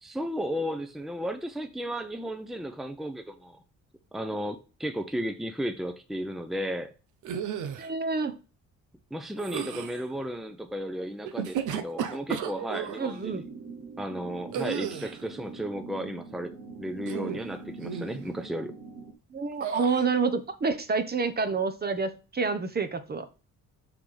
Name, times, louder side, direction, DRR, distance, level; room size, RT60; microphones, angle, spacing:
voice 1, 0.0-3.6 4.1-6.9 9.1-13.4 14.0-18.7, equal, ahead, 0.8 m, -34 dB
sound 1, 7.2-7.9 9.4-10.0 11.3-13.0 14.5-15.2 17.0-17.5 17.8-18.2 19.6-20.1, right 8 dB, 80° right, 0.9 m, -33 dB
voice 2, 7.8-8.3 13.0-13.4 19.3-23.2, right 4 dB, 30° right, 1.0 m, -28 dB
sound 2, 13.3-19.1, right 4 dB, 60° right, 1.2 m, -43 dB
5.9 x 5.9 x 3.4 m
cardioid pair, 90°, 30 cm